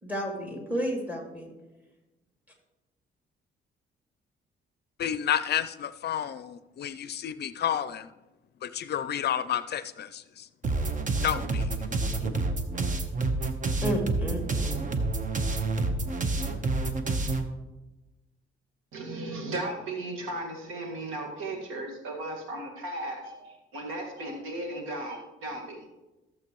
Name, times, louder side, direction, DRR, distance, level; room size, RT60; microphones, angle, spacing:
voice 1, 0.0-1.5 12.2-12.4 13.8-14.8, equal, 10° right, 1 dB, 2.7 m, -32 dB
voice 2, 5.0-8.1 8.6-10.5 11.2-11.7, left 10 dB, 55° left, 14 dB, 0.5 m, -30 dB
sound 1, 10.6-17.4, right 3 dB, 40° right, 1.1 m, -28 dB
voice 3, 18.9-25.9, right 2 dB, 90° right, 1 dB, 1.9 m, -36 dB
15.0 x 7.4 x 3.1 m, 1.1 s
cardioid pair, 90°, 20 cm